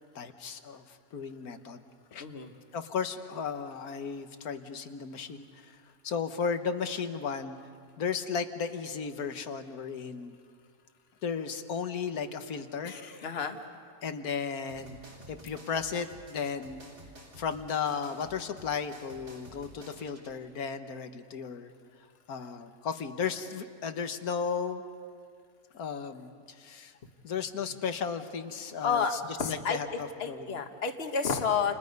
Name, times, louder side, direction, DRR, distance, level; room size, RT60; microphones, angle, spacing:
voice 1, 0.2-0.8 1.1-1.8 2.1-2.2 2.7-5.5 6.0-7.6 8.0-10.4 11.2-12.9 14.0-15.0 15.3-16.9 17.4-21.7 22.3-24.8 25.7-26.3 26.6-26.9 27.2-29.2 29.5-30.5, left 6 dB, 75° left, 8 dB, 1.7 m, -34 dB
voice 2, 2.2-2.5 12.8-13.6 28.8-29.8 30.2-31.7, left 6 dB, 45° left, 6 dB, 1.6 m, -30 dB
sound 1, 14.7-20.3, right 1 dB, 60° right, 3.7 m, -51 dB
29.5 x 28.5 x 5.4 m, 2.1 s
omnidirectional pair, 1.6 m